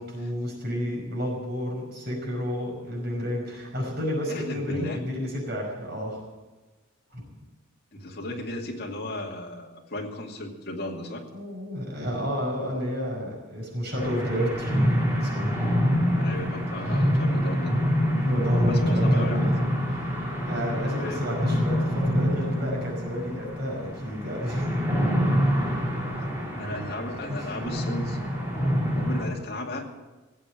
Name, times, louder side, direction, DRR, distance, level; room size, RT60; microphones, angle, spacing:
voice 1, 0.0-6.2 7.1-7.2 11.3-15.6 16.9-17.0 18.2-19.5 19.9-20.2 20.4-24.9 27.3-27.5, equal, 50° right, -1 dB, 5.3 m, -30 dB
voice 2, 4.3-5.0 7.9-11.2 16.2-17.8 18.6-19.5 21.0-21.2 26.6-28.2 28.9-29.9, left 1 dB, 50° left, -1 dB, 2.4 m, -35 dB
sound 1, 13.9-29.2, equal, 10° right, 3.5 m, -26 dB
17.5 x 7.7 x 8.7 m, 1.1 s
head